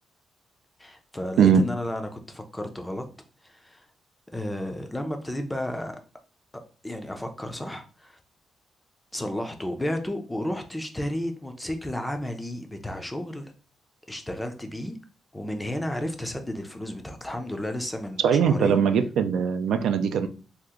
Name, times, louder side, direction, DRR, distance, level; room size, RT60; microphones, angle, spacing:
voice 1, 0.8-3.1 3.4-3.9 4.3-6.0 6.5-8.2 9.1-13.5 14.1-15.0 15.3-18.8, left 1 dB, 5° left, 5 dB, 0.4 m, -32 dB
voice 2, 18.2-20.3, right 7 dB, 85° right, 8 dB, 0.3 m, -21 dB
2.8 x 2.4 x 3.5 m, 0.36 s
wide cardioid pair, 165°, 0 cm